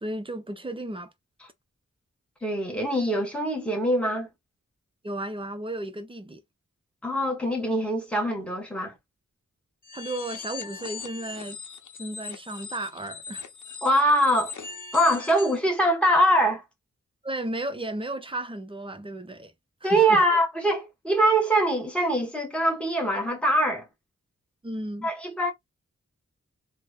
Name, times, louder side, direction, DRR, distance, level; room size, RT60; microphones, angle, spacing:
voice 1, 0.0-1.1 5.0-6.4 9.9-11.6 11.9-13.5 17.2-19.5 19.8-20.2 24.6-25.1, right 1 dB, 20° right, 0.5 m, -34 dB
voice 2, 2.4-4.3 7.0-8.9 13.8-14.5 14.9-16.6 19.8-23.9 25.0-25.5, right 1 dB, 5° left, 1.0 m, -23 dB
sound 1, 9.8-15.6, left 6 dB, 75° left, 0.6 m, -40 dB
3.0 x 2.0 x 2.3 m
wide cardioid pair, 80°, 30 cm